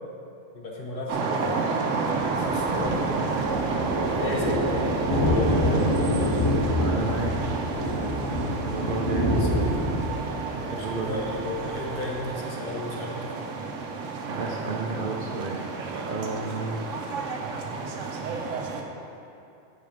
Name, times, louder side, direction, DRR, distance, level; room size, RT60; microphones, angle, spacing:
voice 1, 0.5-1.6 2.2-3.1 3.5-5.6 9.1-9.9 10.6-13.5, left 2 dB, 50° left, -1 dB, 1.0 m, -35 dB
sound 1, 1.1-18.8, right 4 dB, 90° right, 1.1 m, -30 dB
Thunder, 2.1-12.0, left 1 dB, 20° left, 1.4 m, -27 dB
voice 2, 6.8-7.6 8.5-9.4 10.8-11.3 14.4-16.9, right 3 dB, 55° right, 0 dB, 0.7 m, -32 dB
8.6 x 4.9 x 5.1 m, 2.6 s
omnidirectional pair, 1.3 m